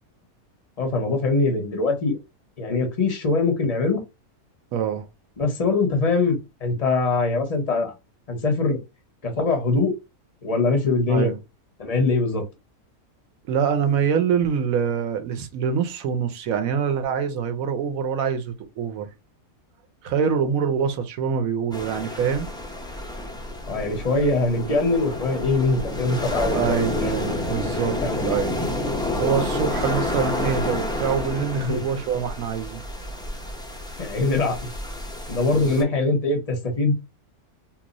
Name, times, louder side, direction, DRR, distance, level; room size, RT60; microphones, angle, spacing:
voice 1, 0.8-2.2 2.6-4.0 5.4-7.9 8.3-8.8 9.2-9.9 10.4-11.3 11.8-12.5 23.7-27.3 28.0-28.4 31.5-31.8 34.0-34.7 35.3-36.9, left 3 dB, 35° left, 0.7 m, -23 dB
voice 2, 4.7-5.1 11.1-11.3 13.5-19.1 20.0-22.5 26.5-28.0 28.2-28.6 29.2-32.8 35.5-35.9, right 7 dB, 75° right, 1.0 m, -25 dB
sound 1, 21.7-35.8, left 1 dB, 5° left, 0.3 m, -29 dB
2.9 x 2.0 x 3.8 m
omnidirectional pair, 1.5 m